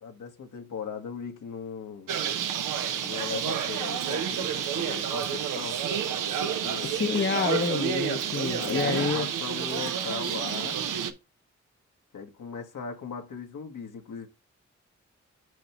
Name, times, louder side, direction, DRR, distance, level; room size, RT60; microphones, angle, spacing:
voice 1, 0.0-2.1 3.0-5.8 6.4-7.0 8.5-10.8 12.1-14.3, left 6 dB, 75° left, 1.3 m, -38 dB
Bird, 2.1-11.1, right 8 dB, 90° right, 0.7 m, -30 dB
voice 2, 6.8-9.3, left 5 dB, 35° left, 0.7 m, -28 dB
6.3 x 5.4 x 2.9 m
supercardioid pair, 40°, 31 cm